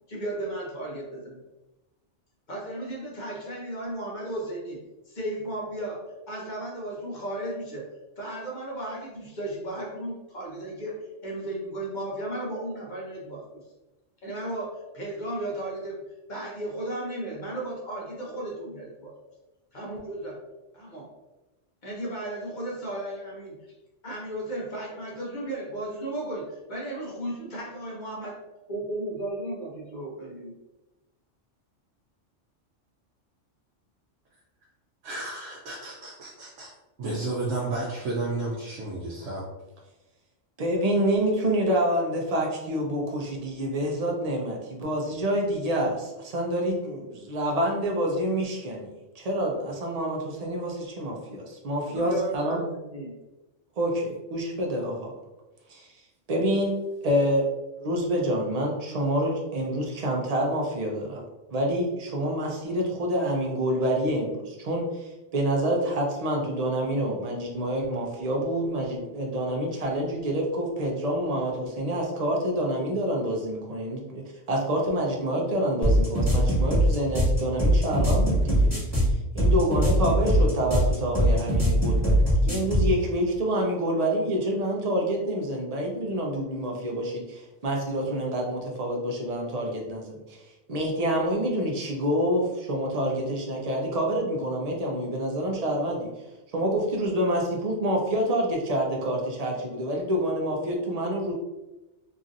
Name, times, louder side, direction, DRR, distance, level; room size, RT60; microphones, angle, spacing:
voice 1, 0.1-1.4 2.5-4.8 5.1-6.0 6.3-7.8 8.2-10.9 11.2-13.6 14.2-16.0 16.3-19.1 19.7-20.4 20.7-21.1 21.8-23.5 24.0-28.3 28.7-30.5 51.9-53.1, right 1 dB, 45° left, -3 dB, 0.8 m, -34 dB
voice 2, 35.0-36.7 37.0-39.4, right 2 dB, 75° right, -4 dB, 1.0 m, -32 dB
voice 3, 40.6-52.6 53.8-55.1 55.7-55.9 56.3-56.8 57.0-57.5 57.8-61.2 61.5-74.2 74.5-78.7 79.3-90.4 90.7-96.1 96.5-101.3, equal, 45° right, -1 dB, 0.5 m, -27 dB
sound 1, 75.8-82.9, equal, 15° left, 1.4 m, -21 dB
2.9 x 2.6 x 2.5 m, 1.0 s
omnidirectional pair, 1.3 m